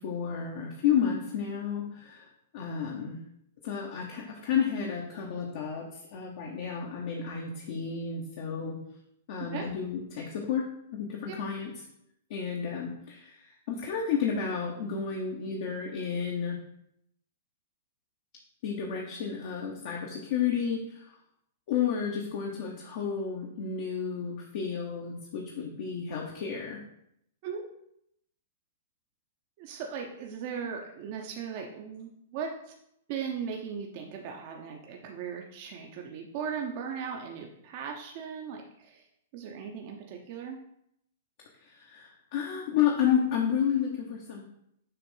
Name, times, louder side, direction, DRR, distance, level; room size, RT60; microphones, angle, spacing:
voice 1, 0.0-2.3 2.5-3.2 3.6-5.9 6.1-8.8 9.3-10.6 10.9-11.7 12.3-13.4 13.7-16.6 18.6-21.0 21.7-26.8 41.6-44.5, left 7 dB, 55° left, 0 dB, 0.9 m, -31 dB
voice 2, 9.4-9.7 11.3-11.4 27.4-27.7 29.6-32.7 33.1-39.0 39.3-40.6, right 6 dB, 45° right, 2 dB, 0.7 m, -38 dB
6.7 x 2.5 x 5.5 m, 0.74 s
hypercardioid pair, 140°, 0 cm